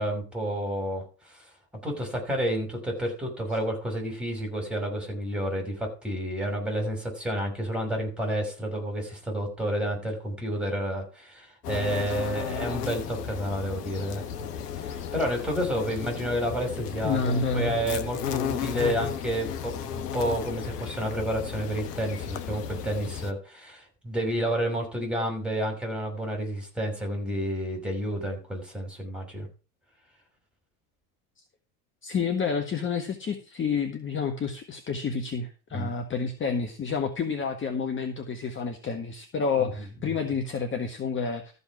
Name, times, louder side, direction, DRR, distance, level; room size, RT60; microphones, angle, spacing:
voice 1, 0.0-1.4 1.8-14.2 14.8-29.5 35.7-35.9 39.6-39.7, equal, ahead, 3 dB, 5.8 m, -30 dB
sound 1, 11.6-23.3, left 8 dB, 70° left, 1.3 m, -34 dB
voice 2, 17.0-17.7 32.0-41.4, left 5 dB, 25° left, 7 dB, 1.6 m, -29 dB
14.0 x 5.5 x 6.2 m, 0.35 s
hypercardioid pair, 85°, 49 cm